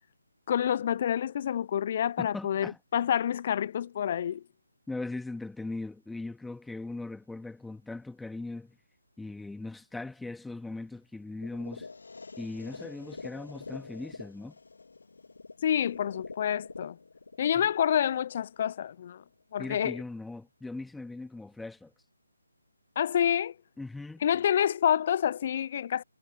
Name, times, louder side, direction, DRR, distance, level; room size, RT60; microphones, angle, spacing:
voice 1, 0.5-4.4 15.6-17.0 17.4-19.2 19.5-20.0 23.0-23.5 24.2-26.0, left 9 dB, 40° left, 0.3 m, -28 dB
voice 2, 2.2-2.8 4.9-8.8 9.2-11.9 12.4-14.5 17.6-17.7 19.6-21.9 23.8-24.2, left 2 dB, 5° left, 1.9 m, -39 dB
sound 1, 11.4-19.4, left 4 dB, 70° left, 2.2 m, -46 dB
figure-of-eight pair, 150°, 0 cm